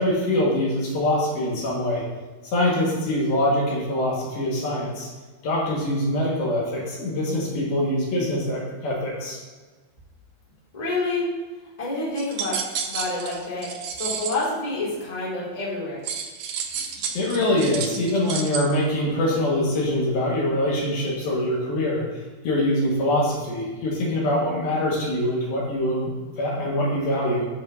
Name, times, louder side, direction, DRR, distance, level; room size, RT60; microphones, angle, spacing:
voice 1, 0.0-2.0 2.4-5.1 5.4-9.4 17.1-22.0 22.4-27.5, left 1 dB, 70° left, -4 dB, 3.4 m, -24 dB
voice 2, 10.7-11.3 11.8-12.6 12.9-13.7 13.9-16.0, left 2 dB, 15° left, -7 dB, 1.5 m, -28 dB
sound 1, 12.2-14.4 16.0-18.6, right 7 dB, 90° right, 1.6 m, -31 dB
10.0 x 6.7 x 2.7 m, 1.3 s
omnidirectional pair, 4.5 m